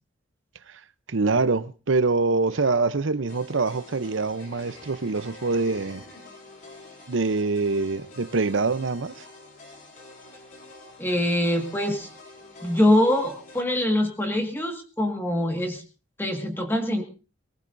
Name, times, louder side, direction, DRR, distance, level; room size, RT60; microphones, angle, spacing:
voice 1, 1.1-6.0 7.1-9.2, right 3 dB, 80° right, 0.7 m, -24 dB
Laughter, 2.5-6.7, left 1 dB, 70° left, 6.1 m, -50 dB
sound 1, 3.3-13.6, left 2 dB, 45° left, 3.5 m, -47 dB
voice 2, 11.0-12.1 12.6-15.8 16.2-17.0, left 1 dB, 10° left, 1.8 m, -24 dB
23.0 x 19.5 x 2.7 m
head